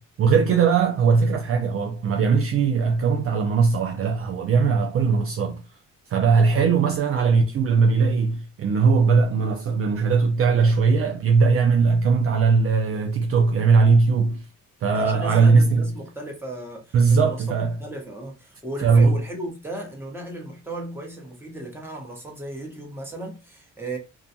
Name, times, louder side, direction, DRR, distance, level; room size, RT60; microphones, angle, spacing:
voice 1, 0.2-5.6 6.1-14.4 14.8-15.9 16.9-17.8 18.8-19.2, right 5 dB, 50° right, 0.5 m, -19 dB
voice 2, 14.9-24.0, right 1 dB, 10° right, 1.1 m, -36 dB
2.4 x 2.2 x 2.7 m
cardioid pair, 90°, 30 cm